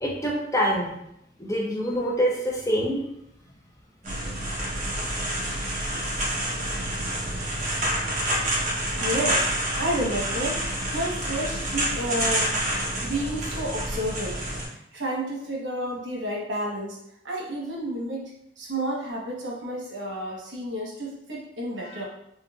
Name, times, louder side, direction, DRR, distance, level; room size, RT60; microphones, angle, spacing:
voice 1, 0.0-0.9 1.4-3.0, equal, 15° left, -2 dB, 0.6 m, -25 dB
sound 1, 4.0-14.7, right 1 dB, 40° right, 0.9 m, -28 dB
voice 2, 9.0-10.6 10.9-12.5 12.8-17.0 17.2-18.3 18.6-22.0, right 1 dB, 90° right, -2 dB, 1.0 m, -31 dB
3.8 x 3.0 x 2.3 m, 0.78 s
head